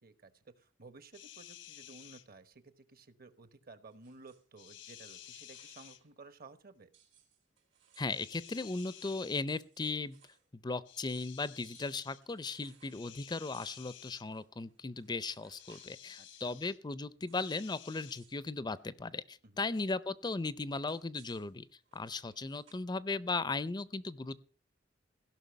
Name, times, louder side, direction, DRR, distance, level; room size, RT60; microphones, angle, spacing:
voice 1, 0.0-6.9 16.2-16.6 19.4-19.7, right 3 dB, 50° right, 12 dB, 1.2 m, -55 dB
sound 1, 1.1-2.3 4.6-6.0 8.1-9.4 10.9-12.2 12.9-14.3 15.5-16.8 17.3-18.2, left 12 dB, 80° left, 1.1 m, -53 dB
sound 2, 3.9-6.1 6.4-6.5 6.9-10.5 10.7-10.8 11.1-11.4 11.6-13.1 13.5-16.0 16.2-16.6 17.3-17.8 18.0-18.4 18.8-19.1 20.6-22.7, right 8 dB, 80° right, 3.8 m, -66 dB
voice 2, 8.0-10.2 10.6-21.7 21.9-24.4, left 3 dB, 25° left, 17 dB, 0.5 m, -37 dB
16.5 x 5.9 x 8.1 m, 0.42 s
head